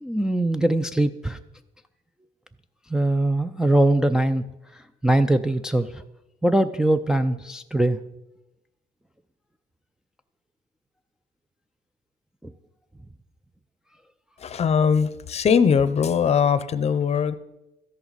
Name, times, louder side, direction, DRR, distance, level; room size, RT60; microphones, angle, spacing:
voice 1, 0.0-1.4 2.9-4.4 5.0-5.9 6.4-8.0, right 1 dB, 5° right, 5 dB, 0.4 m, -21 dB
voice 2, 14.4-17.4, left 6 dB, 40° left, 14 dB, 0.7 m, -21 dB
13.0 x 10.5 x 4.1 m, 0.94 s
cardioid pair, 110°, 17 cm